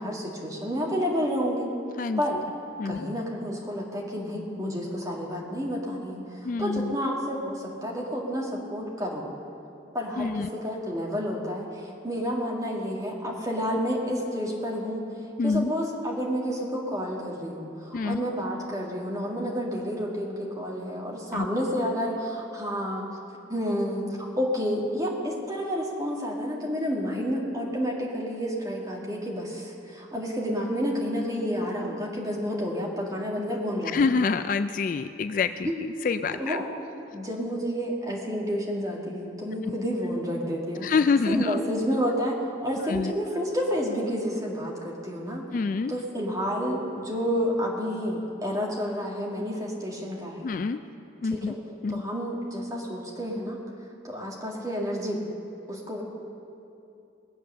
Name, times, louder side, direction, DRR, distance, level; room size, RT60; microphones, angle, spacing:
voice 1, 0.0-1.7 2.2-2.4 2.8-9.3 9.9-15.0 15.4-23.1 23.5-34.0 35.6-35.7 36.4-36.7 37.1-40.9 41.3-45.5 45.9-50.5 51.3-51.6 51.9-53.6 54.0-55.2 55.7-56.0, equal, 20° right, -3 dB, 2.0 m, -30 dB
voice 2, 6.4-7.0 10.2-10.5 15.4-15.7 17.9-18.2 21.3-21.5 33.9-35.7 36.0-36.6 39.6-39.7 40.8-41.6 42.9-43.1 45.5-45.9 50.4-50.8 51.2-51.5 51.8-52.0, left 4 dB, 45° left, 10 dB, 0.3 m, -26 dB
20.5 x 7.9 x 6.7 m, 2.7 s
head